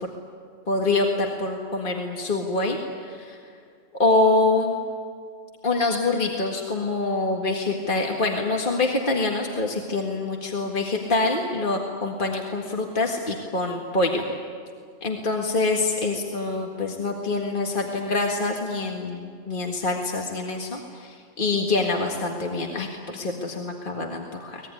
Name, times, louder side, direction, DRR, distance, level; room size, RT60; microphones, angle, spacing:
voice 1, 0.7-2.8 3.1-3.4 4.0-4.8 5.6-14.3 15.0-24.6, left 3 dB, 45° left, 1 dB, 2.0 m, -25 dB
24.0 x 19.5 x 9.8 m, 2.2 s
omnidirectional pair, 1.3 m